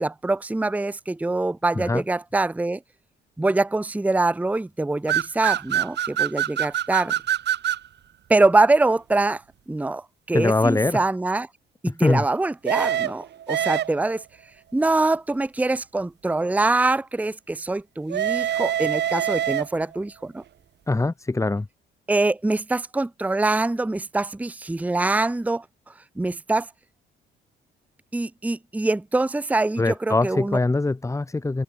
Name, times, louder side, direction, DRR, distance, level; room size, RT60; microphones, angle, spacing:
voice 1, 0.0-2.8 3.4-7.1 8.3-9.4 9.7-11.5 12.0-14.2 14.7-20.4 22.1-25.6 26.2-26.7 28.1-30.6, right 2 dB, 5° right, 0.7 m, -24 dB
sound 1, 5.1-7.9 12.7-14.2 18.1-20.0, right 10 dB, 60° right, 1.0 m, -25 dB
voice 2, 10.3-11.0 11.9-12.2 20.9-21.7 29.8-31.6, left 2 dB, 15° left, 1.2 m, -22 dB
cardioid pair, 90°, 20 cm